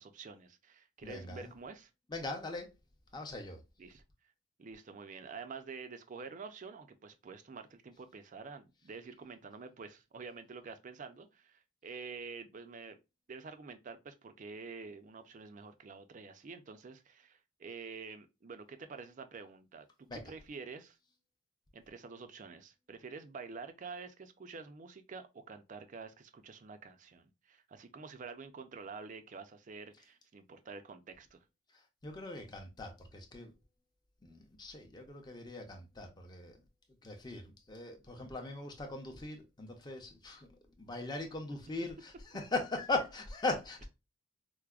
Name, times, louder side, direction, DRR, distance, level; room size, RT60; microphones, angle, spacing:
voice 1, 0.0-1.9 3.8-4.0 4.6-13.0 13.3-21.0 21.7-31.4, right 4 dB, 35° right, 0.4 m, -48 dB
voice 2, 1.0-1.5 2.1-2.7 3.1-3.6 20.1-20.2 32.0-33.5 34.2-36.6 37.0-40.5 40.8-43.9, left 2 dB, 20° left, 0.6 m, -39 dB
4.6 x 2.1 x 2.3 m
head